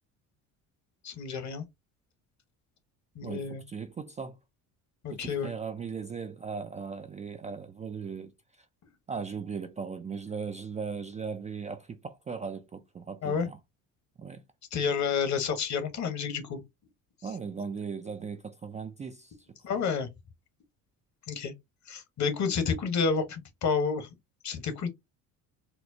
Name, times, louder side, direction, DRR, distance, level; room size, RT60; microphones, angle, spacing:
voice 1, 1.0-1.6 3.2-3.6 5.0-5.5 13.2-13.5 14.7-16.6 19.6-20.1 21.3-21.5 21.9-24.1 24.4-24.9, left 5 dB, 50° left, 1.2 m, -30 dB
voice 2, 3.2-4.4 5.1-8.3 9.1-13.6 14.2-14.4 17.2-19.3 19.7-19.8, right 5 dB, 20° right, 0.3 m, -38 dB
4.3 x 2.1 x 2.7 m
supercardioid pair, 85°, 37 cm